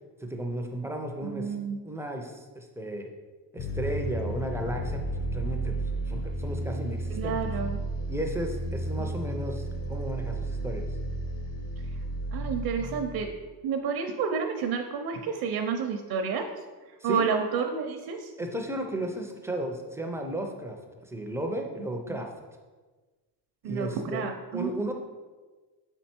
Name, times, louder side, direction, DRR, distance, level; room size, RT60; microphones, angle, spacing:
voice 1, 0.2-1.5 1.8-3.1 3.5-5.7 6.1-7.4 8.1-10.8 17.0-17.3 18.4-20.8 21.0-22.3 23.6-24.3 24.5-24.9, right 1 dB, 5° right, 2 dB, 0.3 m, -34 dB
voice 2, 1.2-1.8 7.1-7.8 11.8-11.9 12.3-13.3 13.6-16.4 17.0-18.3 22.1-22.2 23.6-24.9, right 6 dB, 60° right, 4 dB, 0.6 m, -30 dB
sound 1, 3.6-13.2, right 1 dB, 50° left, 0.7 m, -33 dB
5.7 x 4.5 x 4.3 m, 1.3 s
cardioid pair, 170°, 43 cm